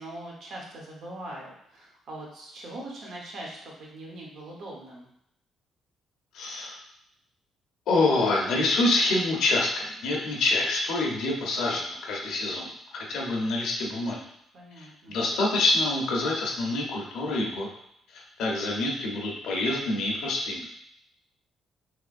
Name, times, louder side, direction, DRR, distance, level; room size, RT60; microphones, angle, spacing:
voice 1, 0.0-5.1 14.5-15.2, right 1 dB, 70° right, -2 dB, 1.0 m, -41 dB
voice 2, 6.3-6.8 7.9-14.2 14.8-17.7 18.1-20.7, left 2 dB, 80° left, -1 dB, 0.8 m, -26 dB
3.5 x 3.1 x 2.5 m, 0.74 s
cardioid pair, 90°, 0 cm